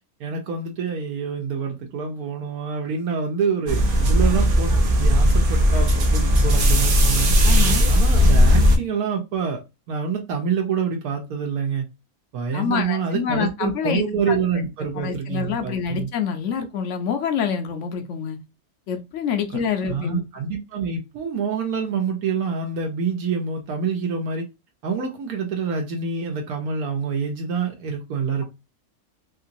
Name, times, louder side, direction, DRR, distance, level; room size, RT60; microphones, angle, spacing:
voice 1, 0.2-7.3 7.9-9.6 9.9-11.8 12.3-16.1 19.5-24.4 24.8-28.4, right 5 dB, 80° right, 1.2 m, -27 dB
sound 1, 3.7-8.8, equal, 50° right, 0.7 m, -17 dB
voice 2, 7.4-7.9 12.5-14.4 15.0-18.4 18.9-20.2, left 7 dB, 65° left, 0.9 m, -26 dB
3.0 x 2.8 x 2.5 m
omnidirectional pair, 1.5 m